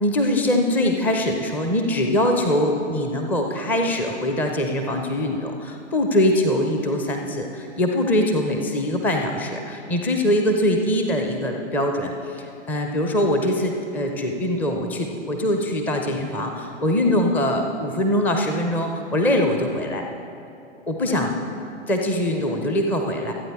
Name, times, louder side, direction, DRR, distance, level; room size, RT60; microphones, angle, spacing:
voice 1, 0.0-20.0 20.9-21.3 21.9-23.3, left 1 dB, 5° left, 3 dB, 0.5 m, -23 dB
25.5 x 8.9 x 3.5 m, 2.8 s
figure-of-eight pair, 120°, 36 cm